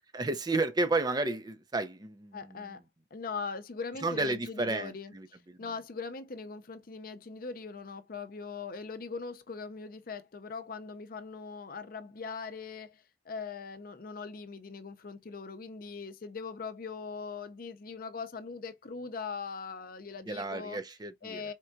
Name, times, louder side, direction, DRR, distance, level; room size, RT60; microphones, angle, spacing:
voice 1, 0.1-2.6 4.0-5.6 20.2-21.4, right 2 dB, 25° right, 0.6 m, -32 dB
voice 2, 2.3-2.8 3.1-20.8 21.2-21.5, left 5 dB, 55° left, 0.6 m, -41 dB
4.4 x 3.5 x 2.5 m
head